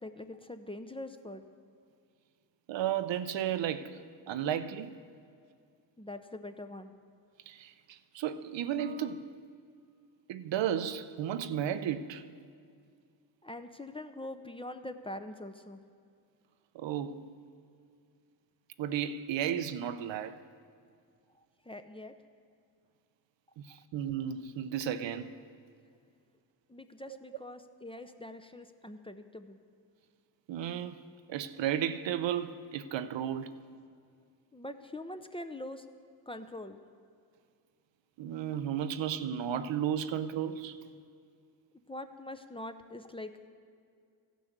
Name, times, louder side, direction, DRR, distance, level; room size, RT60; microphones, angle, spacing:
voice 1, 0.0-1.5 6.0-6.9 13.4-15.8 21.6-22.2 26.7-29.6 34.5-35.9 36.3-36.8 41.9-43.5, left 1 dB, 10° left, 0.6 m, -43 dB
voice 2, 2.7-4.0 4.3-5.0 7.5-9.4 10.3-12.2 16.7-17.3 18.8-20.4 23.6-25.3 30.5-31.0 31.3-33.6 38.2-40.8, right 9 dB, 65° right, 0.6 m, -33 dB
14.5 x 6.2 x 6.6 m
supercardioid pair, 45°, 47 cm